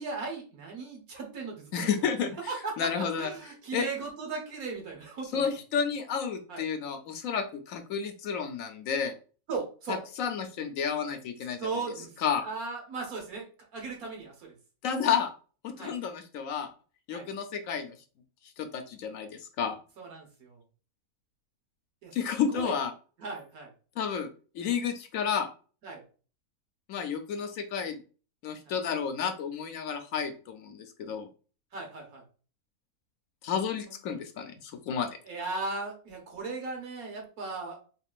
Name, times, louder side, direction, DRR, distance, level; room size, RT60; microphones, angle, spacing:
voice 1, 0.0-1.9 2.5-5.4 6.5-6.6 9.5-10.0 11.6-12.1 12.4-14.5 15.8-15.9 17.1-17.3 20.0-20.6 22.0-22.2 22.5-22.7 23.2-23.7 25.8-26.0 28.7-28.8 31.7-32.2 33.9-34.0 35.3-37.8, right 3 dB, 75° right, 1 dB, 1.7 m, -37 dB
voice 2, 1.7-2.4 2.8-3.3 3.7-3.9 5.3-9.1 10.2-11.6 12.2-12.5 14.8-15.3 15.6-16.7 17.1-18.0 18.6-19.8 22.1-22.9 24.0-24.3 24.5-25.5 26.9-28.0 28.4-31.3 33.4-35.1, left 7 dB, 70° left, 7 dB, 1.0 m, -31 dB
4.1 x 3.6 x 2.4 m, 0.37 s
omnidirectional pair, 1.6 m